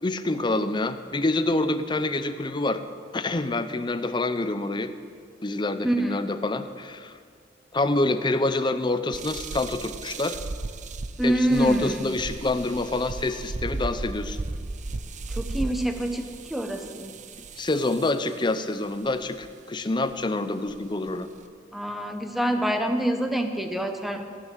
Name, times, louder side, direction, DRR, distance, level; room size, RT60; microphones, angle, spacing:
voice 1, 0.0-2.8 3.1-4.9 5.4-7.1 7.7-10.4 11.2-14.4 17.6-21.3, left 2 dB, 25° left, 10 dB, 0.6 m, -27 dB
voice 2, 5.8-6.2 11.2-12.0 15.3-17.1 21.7-24.2, right 1 dB, ahead, 5 dB, 1.0 m, -26 dB
sound 1, 9.1-18.3 19.1-19.5 20.1-20.2 20.7-21.4, right 3 dB, 40° right, 0.6 m, -36 dB
16.5 x 6.3 x 9.1 m, 2.1 s
head